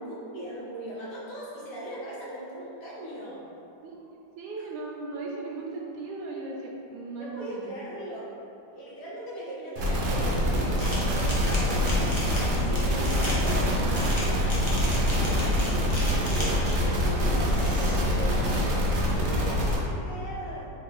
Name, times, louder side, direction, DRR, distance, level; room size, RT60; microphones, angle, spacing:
voice 1, 0.1-3.4 4.6-4.7 7.1-8.3 8.7-14.7 14.9-15.3 16.1-18.5 19.0-20.7, right 1 dB, 70° left, -7 dB, 1.5 m, -39 dB
voice 2, 4.4-7.7 12.6-12.9, right 3 dB, 75° right, -2 dB, 1.1 m, -38 dB
sound 1, 9.8-19.8, equal, 60° right, 0.8 m, -25 dB
sound 2, 10.8-16.9 17.5-18.0, left 1 dB, 45° left, 0.3 m, -37 dB
3.8 x 2.6 x 4.6 m, 2.8 s
omnidirectional pair, 1.9 m